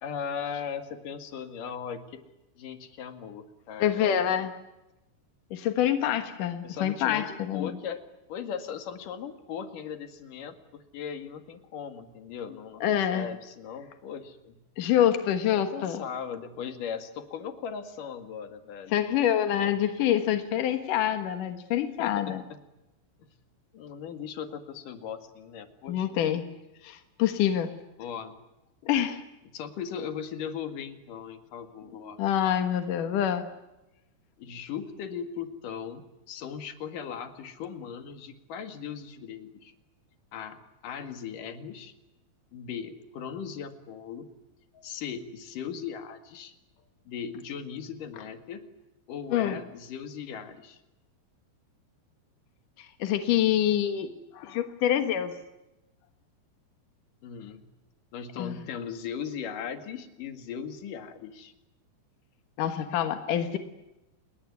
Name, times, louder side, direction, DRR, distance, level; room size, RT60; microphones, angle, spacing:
voice 1, 0.0-2.2 2.6-4.2 6.6-8.0 8.3-14.6 15.5-19.0 19.5-19.7 20.1-20.2 22.0-22.6 23.2-23.3 23.7-26.3 28.0-28.4 29.5-32.2 34.4-39.7 40.3-41.9 42.5-44.3 44.8-46.5 47.0-48.7 49.1-50.8 57.2-57.7 58.1-61.5, left 7 dB, 55° left, 8 dB, 2.8 m, -38 dB
voice 2, 3.8-4.5 5.5-7.7 12.8-13.3 14.8-16.0 18.9-22.4 25.9-26.5 26.8-27.7 28.9-29.2 32.2-33.5 49.3-49.6 52.8-55.4 58.4-58.5 62.6-63.6, left 10 dB, 70° left, 8 dB, 2.0 m, -26 dB
29.5 x 21.0 x 9.6 m, 0.97 s
omnidirectional pair, 5.9 m